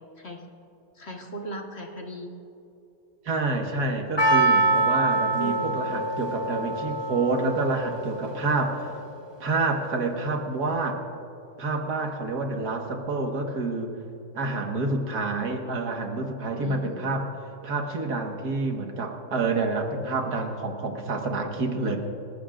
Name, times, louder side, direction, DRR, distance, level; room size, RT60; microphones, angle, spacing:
voice 1, 1.0-2.3 5.4-5.7 16.6-17.2, right 1 dB, 40° left, 2 dB, 1.5 m, -37 dB
voice 2, 3.3-8.9 9.4-11.0 11.6-14.0 14.3-17.3 17.6-22.0, right 3 dB, 70° right, 3 dB, 2.1 m, -28 dB
Percussion, 4.2-8.5 8.8-8.9, right 2 dB, 15° left, 1.1 m, -25 dB
29.0 x 15.5 x 2.5 m, 2.9 s
omnidirectional pair, 1.8 m